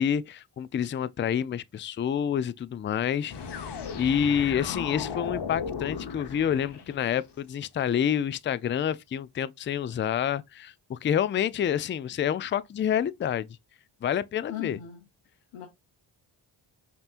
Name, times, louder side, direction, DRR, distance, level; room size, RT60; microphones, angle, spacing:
voice 1, 0.0-13.5 14.0-14.8, left 9 dB, 25° left, 0.3 m, -28 dB
sound 1, 3.3-7.2, left 6 dB, 55° left, 1.0 m, -36 dB
voice 2, 14.5-15.0 15.5-15.7, left 12 dB, 80° left, 0.9 m, -37 dB
5.2 x 3.0 x 2.4 m
supercardioid pair, 45°, 50 cm